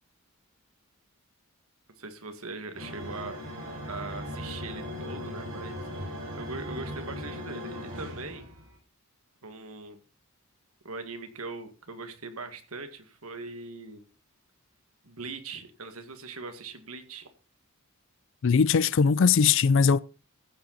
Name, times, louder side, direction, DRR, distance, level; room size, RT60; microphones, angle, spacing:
voice 1, 2.0-3.5 3.9-5.8 6.3-8.5 9.4-10.0 10.8-14.0 15.0-17.3, right 3 dB, 80° right, 1.9 m, -40 dB
sound 1, 2.7-8.8, left 1 dB, 60° right, 5.8 m, -38 dB
voice 2, 18.4-20.0, left 6 dB, 60° left, 0.4 m, -20 dB
15.0 x 7.7 x 4.0 m
head